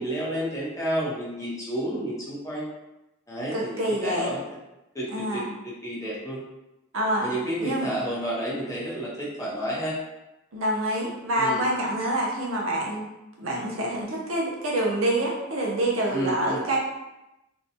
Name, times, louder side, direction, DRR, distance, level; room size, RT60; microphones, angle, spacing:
voice 1, 0.0-2.7 3.3-4.4 4.9-5.5 5.8-6.4 7.2-10.0 11.4-11.6 16.1-16.6, right 1 dB, 15° left, -7 dB, 0.7 m, -30 dB
voice 2, 3.5-4.3 5.1-5.4 6.9-7.2 7.6-7.9 10.5-13.1 13.4-16.8, right 1 dB, 75° right, -3 dB, 0.7 m, -26 dB
2.6 x 2.2 x 2.7 m, 0.93 s
head